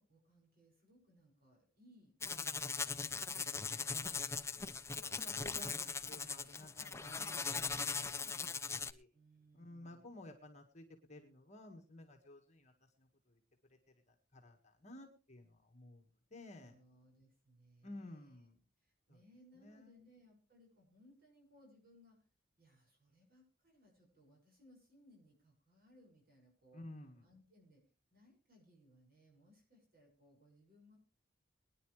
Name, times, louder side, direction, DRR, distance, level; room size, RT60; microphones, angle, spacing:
voice 1, 0.0-3.7 9.1-10.1 16.6-18.3 18.8-22.2 22.6-26.8 27.2-27.8 28.1-31.0, equal, 55° right, -1 dB, 6.4 m, -66 dB
sound 1, 2.2-8.9, left 5 dB, 15° left, 0.6 m, -40 dB
voice 2, 4.5-9.1 9.5-12.7 13.0-13.4 14.1-16.7 17.8-18.6 19.1-19.2 19.5-20.0 26.7-27.2, left 1 dB, 40° left, 4 dB, 1.8 m, -55 dB
22.5 x 10.5 x 3.3 m, 0.36 s
head